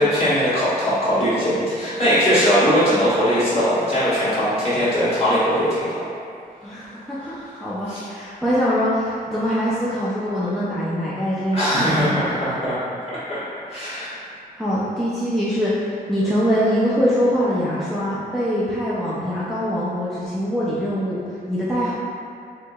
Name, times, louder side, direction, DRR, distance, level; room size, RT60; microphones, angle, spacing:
voice 1, 0.0-6.0 7.2-7.3 7.9-8.0 11.5-12.8 13.1-13.4 13.7-14.2, equal, 35° left, -12 dB, 1.4 m, -20 dB
voice 2, 6.6-12.2 14.6-21.2 21.5-21.9, equal, ahead, -10 dB, 0.4 m, -23 dB
4.5 x 2.9 x 2.3 m, 2.4 s
wide cardioid pair, 180°, 16 cm